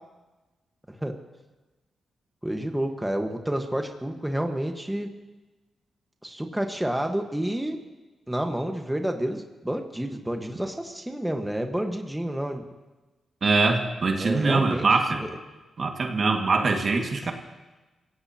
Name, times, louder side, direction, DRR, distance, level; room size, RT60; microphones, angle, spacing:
voice 1, 2.4-5.1 6.2-7.8 8.3-12.6 14.1-14.9 15.2-15.3 16.9-17.0, right 1 dB, 10° right, 4 dB, 1.4 m, -29 dB
voice 2, 13.4-15.2 15.8-17.3, right 3 dB, 55° right, 3 dB, 1.9 m, -23 dB
27.5 x 16.5 x 2.9 m, 1.2 s
cardioid pair, 60°, 0 cm